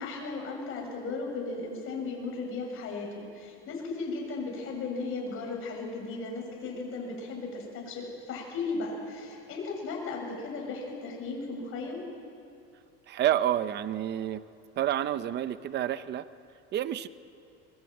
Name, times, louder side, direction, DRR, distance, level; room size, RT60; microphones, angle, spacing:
voice 1, 0.0-12.0, left 3 dB, 45° left, 0 dB, 7.6 m, -36 dB
voice 2, 13.1-14.4 14.8-16.3 16.7-17.1, right 11 dB, 35° right, 13 dB, 0.7 m, -29 dB
22.5 x 21.0 x 8.9 m, 2.5 s
cardioid pair, 130°, 31 cm